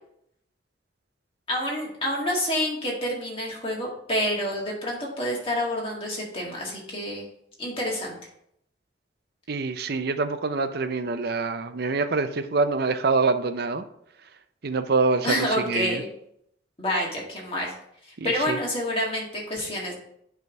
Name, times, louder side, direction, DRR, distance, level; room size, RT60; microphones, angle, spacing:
voice 1, 1.5-7.3 7.6-8.1 15.2-16.1 16.8-17.7 18.2-19.9, left 1 dB, 30° left, -3 dB, 2.1 m, -28 dB
voice 2, 9.5-13.8 14.6-16.0 18.2-18.6, right 4 dB, 55° right, 10 dB, 0.5 m, -25 dB
9.3 x 3.4 x 5.3 m, 0.73 s
head